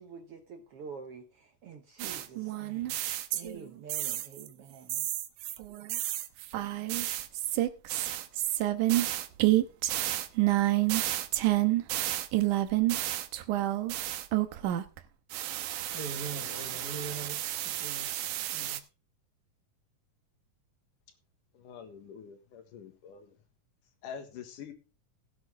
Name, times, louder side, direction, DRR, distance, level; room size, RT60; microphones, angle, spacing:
voice 1, 0.0-3.0 3.3-5.1, right 5 dB, 60° right, 1.6 m, -47 dB
sound 1, 2.0-3.6 3.9-4.5 4.9-15.0 15.3-18.8, right 15 dB, 80° right, 2.3 m, -30 dB
voice 2, 15.9-18.1 18.5-18.8, right 3 dB, 35° left, 2.1 m, -41 dB
voice 3, 21.5-23.4 24.0-24.7, left 7 dB, 80° left, 3.2 m, -45 dB
16.5 x 8.8 x 3.6 m
omnidirectional pair, 3.7 m